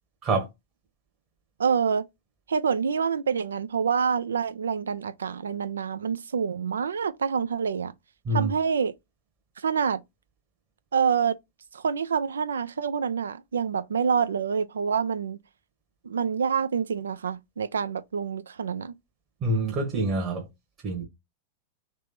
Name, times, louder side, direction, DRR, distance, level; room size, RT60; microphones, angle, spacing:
voice 1, 1.6-2.0 2.5-7.9 8.3-8.9 9.6-10.0 10.9-11.4 11.7-15.4 16.0-18.9, right 6 dB, 70° right, 0.3 m, -27 dB
voice 2, 19.4-20.5 20.8-21.1, right 2 dB, 30° right, 1.1 m, -26 dB
3.4 x 3.2 x 2.8 m
figure-of-eight pair, 95°, 0 cm